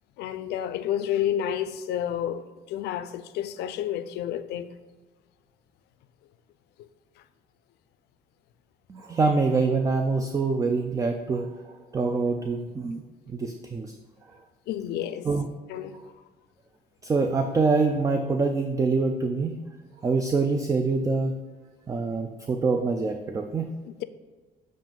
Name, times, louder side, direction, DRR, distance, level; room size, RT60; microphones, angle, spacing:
voice 1, 0.2-4.7 14.7-15.3 15.7-16.0 23.8-24.0, left 10 dB, 80° left, 0.4 m, -30 dB
voice 2, 8.9-13.0 13.3-13.9 15.2-15.5 17.0-19.6 20.0-21.3 21.9-23.7, right 4 dB, 20° right, 0.4 m, -25 dB
7.3 x 2.5 x 5.3 m
cardioid pair, 110°, 17 cm